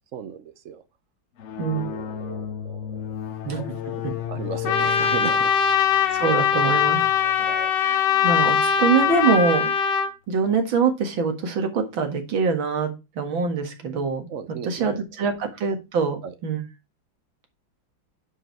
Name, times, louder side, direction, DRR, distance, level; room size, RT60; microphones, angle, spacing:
voice 1, 0.1-0.8 1.7-3.2 4.3-5.9 7.4-7.8 14.3-15.3 16.2-16.3, right 7 dB, 60° right, 0.8 m, -36 dB
sound 1, 1.4-9.5, left 10 dB, 80° left, 0.6 m, -35 dB
Trumpet, 4.6-10.1, left 7 dB, 65° left, 1.5 m, -21 dB
voice 2, 6.1-7.1 7.8-9.7 10.3-14.3 14.6-16.6, right 5 dB, 80° right, 2.5 m, -24 dB
9.9 x 4.9 x 4.5 m
omnidirectional pair, 2.1 m